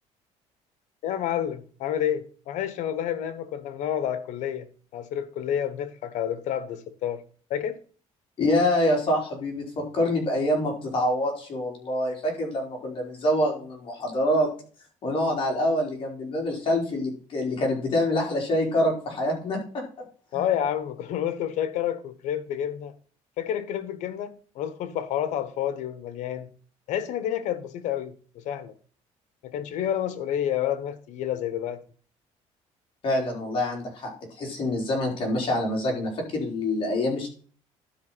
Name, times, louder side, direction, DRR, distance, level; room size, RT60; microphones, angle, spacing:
voice 1, 1.0-7.2 7.5-7.8 20.3-22.9 23.4-26.5 26.9-28.7 29.4-31.8, left 10 dB, 75° left, 1.2 m, -29 dB
voice 2, 8.4-14.5 15.0-19.8 20.3-20.4 33.0-37.3, left 1 dB, 45° left, 4.3 m, -26 dB
12.0 x 5.3 x 4.1 m
cardioid pair, 135°, 12 cm